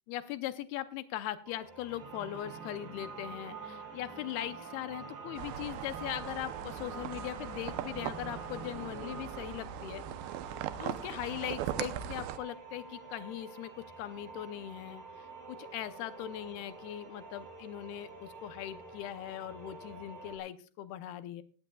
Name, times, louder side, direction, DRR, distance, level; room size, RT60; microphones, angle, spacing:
voice 1, 0.1-10.0 10.8-21.4, left 13 dB, 75° left, 12 dB, 2.5 m, -40 dB
sound 1, 1.4-20.4, right 3 dB, 40° right, 3.6 m, -50 dB
sound 2, 1.9-11.6, right 5 dB, 70° right, 4.5 m, -46 dB
sound 3, 5.4-12.4, right 11 dB, 90° right, 3.0 m, -40 dB
18.0 x 16.0 x 2.3 m, 0.36 s
omnidirectional pair, 4.9 m